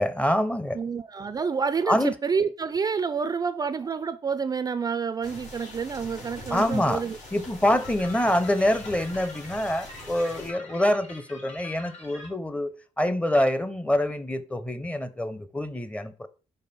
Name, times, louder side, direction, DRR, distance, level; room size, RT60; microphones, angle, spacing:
voice 1, 0.0-0.8 1.9-2.1 6.5-7.0 7.3-16.3, left 1 dB, 10° left, 0.7 m, -25 dB
voice 2, 0.7-7.2, right 5 dB, 30° right, 0.4 m, -28 dB
sound 1, 5.2-10.5, equal, 80° left, 3.5 m, -42 dB
sound 2, 7.8-12.3, left 2 dB, 65° left, 3.4 m, -45 dB
5.4 x 4.2 x 4.2 m
cardioid pair, 85°, 12 cm